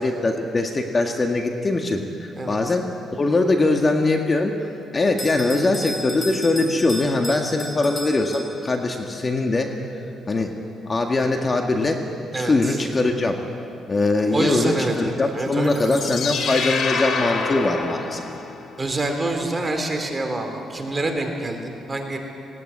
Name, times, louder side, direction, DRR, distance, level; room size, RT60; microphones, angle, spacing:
voice 1, 0.0-4.5 4.9-9.8 10.3-10.5 10.8-12.0 12.4-13.4 13.9-18.2, left 2 dB, 30° left, 3 dB, 1.8 m, -22 dB
Bell, 5.2-8.9, equal, 15° left, 4.0 m, -34 dB
voice 2, 12.3-12.8 14.3-16.1 18.8-22.2, right 2 dB, 25° right, 3 dB, 3.7 m, -26 dB
sound 1, 15.6-18.8, left 5 dB, 65° left, 2.7 m, -27 dB
19.0 x 19.0 x 9.8 m, 2.6 s
cardioid pair, 90°, 0 cm